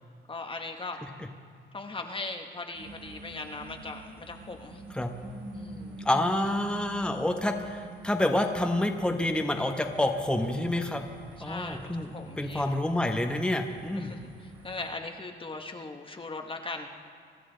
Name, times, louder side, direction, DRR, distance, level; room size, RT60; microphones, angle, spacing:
voice 1, 0.3-1.0 1.7-4.8 5.5-6.1 11.4-12.7 14.0-16.9, left 3 dB, 25° left, 4 dB, 1.1 m, -39 dB
sound 1, 2.7-14.9, right 2 dB, 90° right, 3.3 m, -46 dB
voice 2, 6.0-11.0 11.4-12.1 12.4-14.1, left 1 dB, 5° left, 4 dB, 1.1 m, -28 dB
24.5 x 12.5 x 3.9 m, 2.1 s
cardioid pair, 90°, 20 cm